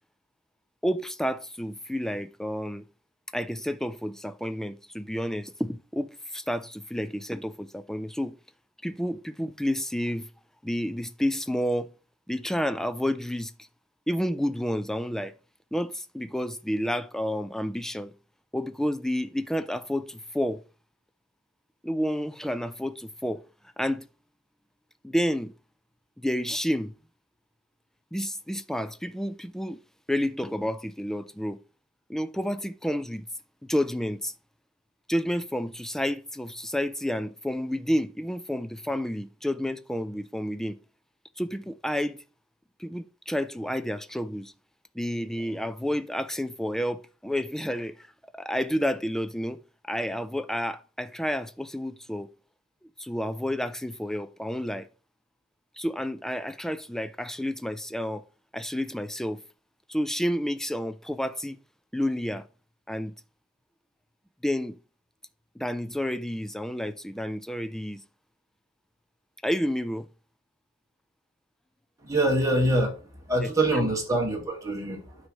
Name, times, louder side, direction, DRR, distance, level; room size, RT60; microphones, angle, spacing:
voice 1, 0.8-2.8 3.3-8.4 8.8-10.3 10.6-11.9 12.3-13.5 14.1-15.3 15.7-18.1 18.5-20.6 21.8-23.4 23.8-24.1 25.0-25.5 26.2-26.9 28.1-29.8 30.1-31.6 32.1-33.2 33.7-34.3 35.1-40.8 41.4-42.2 42.8-44.5 45.0-48.1 48.3-49.6 49.9-52.3 53.0-54.9 55.8-58.2 58.5-59.4 59.9-61.6 61.9-62.5 62.9-63.1 64.4-64.8 65.6-68.0 69.4-70.1 73.4-73.9, equal, ahead, 0.4 m, -30 dB
voice 2, 72.0-72.9 73.3-75.2, right 1 dB, 15° right, 1.9 m, -24 dB
9.4 x 3.2 x 6.2 m
head